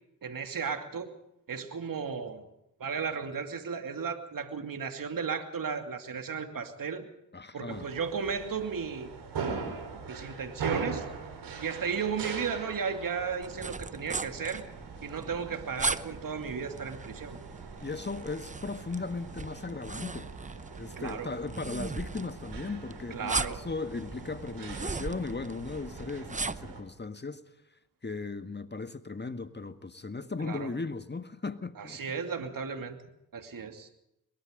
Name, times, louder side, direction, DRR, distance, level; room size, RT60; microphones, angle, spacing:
voice 1, 0.2-1.1 1.5-2.5 2.8-7.1 7.5-9.1 9.4-11.1 11.6-14.6 15.0-17.4 21.0-21.3 23.1-23.7 30.4-30.7 31.8-33.0 33.3-33.9, right 6 dB, 55° right, 2.8 m, -35 dB
voice 2, 7.3-7.9 17.8-20.3 20.8-27.4 28.0-32.0, left 3 dB, 25° left, 1.8 m, -37 dB
sound 1, 7.7-26.8, right 5 dB, 80° right, 5.0 m, -42 dB
sound 2, 13.4-26.8, right 3 dB, 20° right, 0.9 m, -39 dB
22.5 x 22.0 x 5.3 m
supercardioid pair, 50°, 40 cm